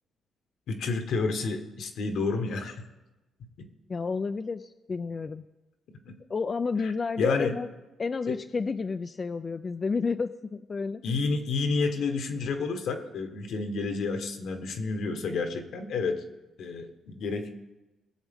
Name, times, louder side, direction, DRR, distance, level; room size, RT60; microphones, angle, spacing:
voice 1, 0.7-2.8 3.6-3.7 6.0-6.2 6.8-6.9 7.2-7.6 8.3-8.4 11.0-16.2 16.6-17.5, left 4 dB, 75° left, 5 dB, 1.4 m, -30 dB
voice 2, 3.9-5.4 6.3-7.7 8.0-11.0, left 4 dB, 35° left, 9 dB, 0.4 m, -30 dB
20.0 x 7.2 x 3.6 m, 1.1 s
cardioid pair, 90°, 0 cm